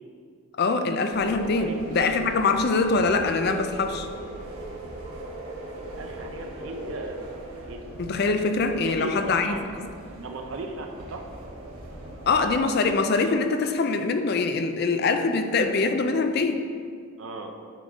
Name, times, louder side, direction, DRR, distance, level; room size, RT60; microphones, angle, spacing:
voice 1, 0.6-4.1 8.0-9.5 12.3-16.6, left 3 dB, 45° left, 7 dB, 0.4 m, -23 dB
sound 1, 1.1-12.6, right 1 dB, 85° right, 1.1 m, -39 dB
voice 2, 5.8-7.2 7.7-7.9 8.8-9.6 10.1-11.2 17.2-17.5, right 3 dB, 65° right, 3 dB, 0.6 m, -37 dB
9.5 x 3.8 x 3.6 m, 2.2 s
head